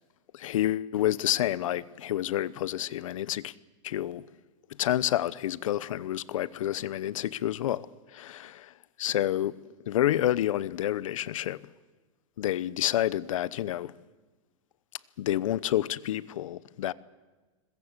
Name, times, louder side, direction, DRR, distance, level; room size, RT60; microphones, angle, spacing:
voice 1, 0.3-3.5 3.8-4.2 4.8-8.7 9.0-9.6 9.9-11.6 12.4-13.9 15.2-16.9, left 12 dB, 80° left, 0.9 m, -29 dB
21.5 x 21.5 x 8.2 m
supercardioid pair, 150°, 17 cm